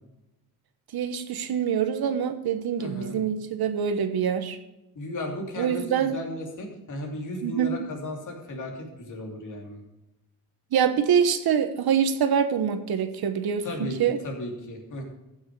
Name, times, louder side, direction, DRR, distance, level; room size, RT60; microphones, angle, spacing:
voice 1, 0.9-4.6 5.6-6.2 7.4-7.7 10.7-14.2, right 8 dB, 75° right, 9 dB, 1.2 m, -25 dB
voice 2, 2.8-3.2 4.9-9.8 13.6-14.0 14.2-15.0, left 1 dB, 55° left, 1 dB, 2.9 m, -35 dB
14.5 x 6.4 x 4.7 m, 0.98 s
wide cardioid pair, 135°, 38 cm